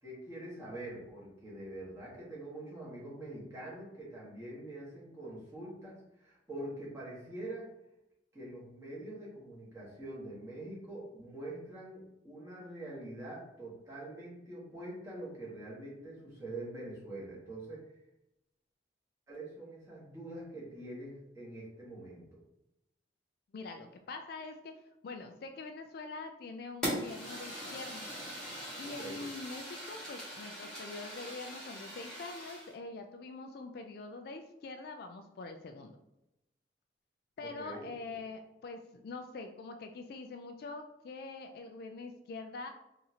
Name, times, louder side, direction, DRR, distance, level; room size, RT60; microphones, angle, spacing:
voice 1, 0.0-7.7 8.3-17.8 19.3-22.4 28.8-29.2 37.4-38.2, right 1 dB, 15° right, -6 dB, 1.4 m, -45 dB
voice 2, 23.5-24.7 25.0-28.1 28.8-36.0 37.4-42.7, left 3 dB, 55° left, 6 dB, 0.3 m, -44 dB
Fire, 26.8-32.7, equal, 5° left, 1.5 m, -41 dB
4.0 x 2.5 x 2.8 m, 0.87 s
head